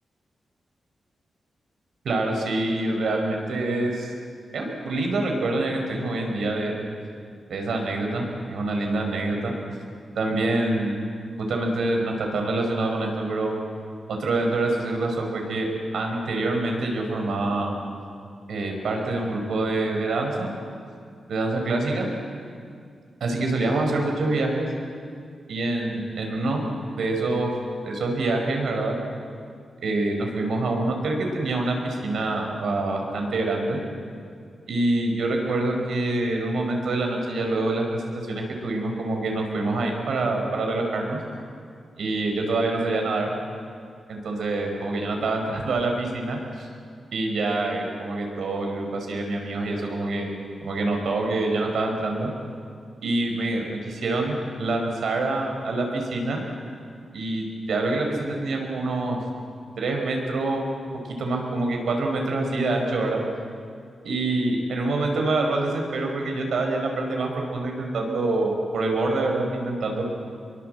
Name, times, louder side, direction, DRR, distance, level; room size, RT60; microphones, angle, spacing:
voice 1, 2.0-4.1 4.5-6.8 7.5-9.5 10.1-11.0 11.5-13.5 14.1-17.8 18.5-20.5 21.3-22.1 23.2-24.7 25.5-26.7 27.0-27.5 27.8-29.0 29.8-33.8 34.7-41.2 42.0-43.3 44.1-46.7 47.1-50.3 50.6-52.3 53.0-56.4 57.1-59.2 59.8-60.7 61.2-63.2 64.0-70.0, right 2 dB, 80° right, 2 dB, 5.2 m, -26 dB
26.5 x 23.0 x 8.0 m, 2.2 s
wide cardioid pair, 175°, 0 cm